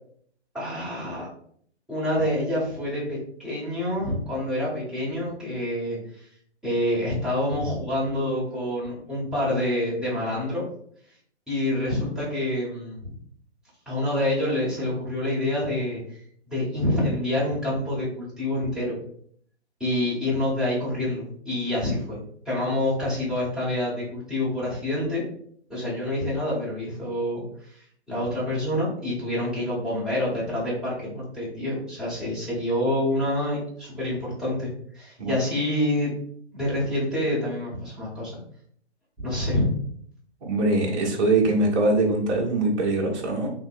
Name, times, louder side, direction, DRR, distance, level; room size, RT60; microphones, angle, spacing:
voice 1, 0.5-1.3 1.9-6.3 6.6-10.6 11.5-13.1 13.9-16.2 16.5-18.9 19.8-22.2 22.4-25.2 25.7-34.7 34.9-36.1 36.5-38.4 39.2-39.8, left 1 dB, ahead, -9 dB, 1.0 m, -27 dB
voice 2, 40.4-43.5, right 2 dB, 25° right, -3 dB, 0.8 m, -22 dB
3.5 x 2.9 x 2.6 m, 0.63 s
figure-of-eight pair, 130°, 34 cm